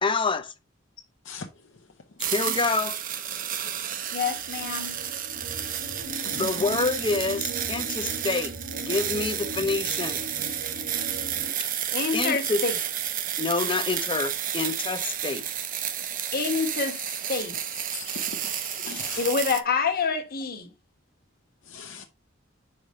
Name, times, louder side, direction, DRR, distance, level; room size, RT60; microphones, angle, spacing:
voice 1, 0.0-0.5 2.3-3.0 6.2-8.5 8.9-10.2 12.1-12.6 13.4-15.4, left 3 dB, 25° left, 0.7 m, -27 dB
sound 1, 2.2-19.6, right 9 dB, 45° right, 0.7 m, -31 dB
voice 2, 4.1-4.9 6.3-6.6 7.8-7.9 11.9-12.8 16.3-17.8 19.2-20.7, left 5 dB, 50° left, 1.3 m, -28 dB
sound 2, 4.2-11.5, right 2 dB, 70° right, 1.3 m, -40 dB
voice 3, 17.9-19.3 21.7-22.0, left 5 dB, 70° left, 0.8 m, -39 dB
5.0 x 4.8 x 5.4 m
head